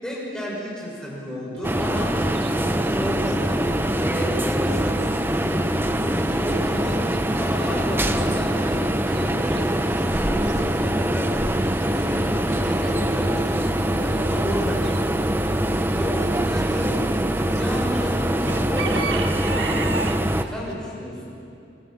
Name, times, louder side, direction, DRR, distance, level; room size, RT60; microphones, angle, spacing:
voice 1, 0.0-9.8 10.2-15.1 15.9-17.0 17.5-21.4, equal, 5° left, -5 dB, 6.7 m, -33 dB
Chicken rooster / Bird, 1.5-20.7, right 4 dB, 70° right, 1.6 m, -40 dB
sound 1, 1.6-20.4, right 1 dB, 10° right, 0.9 m, -23 dB
27.5 x 26.0 x 5.9 m, 2.5 s
head